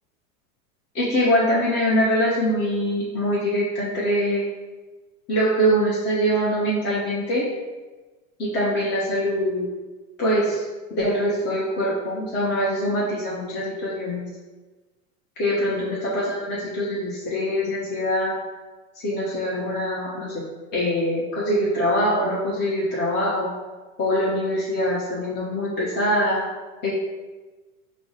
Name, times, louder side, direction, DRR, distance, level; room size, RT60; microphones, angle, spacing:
voice 1, 0.9-4.4 5.3-7.5 8.4-9.7 10.2-10.6 10.9-14.2 15.4-18.4 19.0-20.4 20.7-23.5 24.0-26.4 26.8-26.9, equal, 25° left, -7 dB, 1.0 m, -23 dB
4.7 x 2.1 x 3.9 m, 1.2 s
hypercardioid pair, 100°, 44 cm